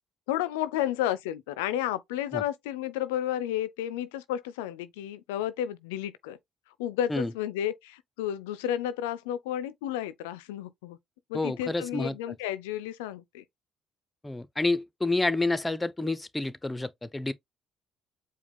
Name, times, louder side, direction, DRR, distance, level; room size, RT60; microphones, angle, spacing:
voice 1, 0.3-6.4 6.8-11.0 11.3-13.4, left 11 dB, 80° left, 0.4 m, -32 dB
voice 2, 11.3-12.2 14.2-17.3, left 2 dB, 15° left, 0.6 m, -29 dB
4.8 x 2.2 x 3.5 m
hypercardioid pair, 50°, 0 cm